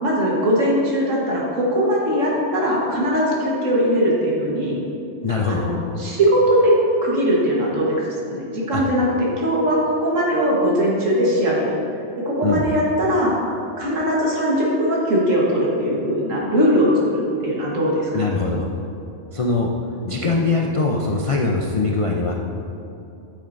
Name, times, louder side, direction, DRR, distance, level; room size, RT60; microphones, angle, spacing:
voice 1, 0.0-4.8 5.5-6.8 7.0-7.9 8.3-11.8 12.2-13.3 13.8-18.4, equal, 80° right, -4 dB, 1.7 m, -20 dB
voice 2, 5.2-5.6 8.7-8.8 12.4-12.6 18.1-18.7 19.3-19.7 20.0-22.4, left 3 dB, 60° left, -1 dB, 0.3 m, -22 dB
8.9 x 8.5 x 2.6 m, 2.9 s
omnidirectional pair, 1.3 m